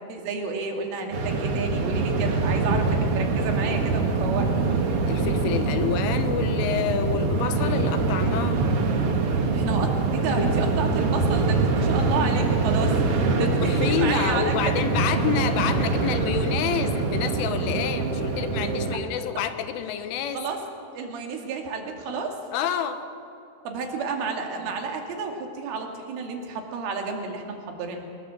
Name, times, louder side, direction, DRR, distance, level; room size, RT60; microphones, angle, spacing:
voice 1, 0.1-4.5 9.5-14.7 20.3-20.6 20.9-22.4 23.7-28.1, right 4 dB, 80° right, 2 dB, 5.0 m, -31 dB
sound 1, 1.1-18.9, right 3 dB, 65° right, 1.4 m, -24 dB
voice 2, 5.1-8.6 10.4-10.5 13.3-20.4 22.5-23.0, left 8 dB, 90° left, 9 dB, 3.8 m, -28 dB
23.0 x 21.0 x 7.7 m, 2.8 s
omnidirectional pair, 5.6 m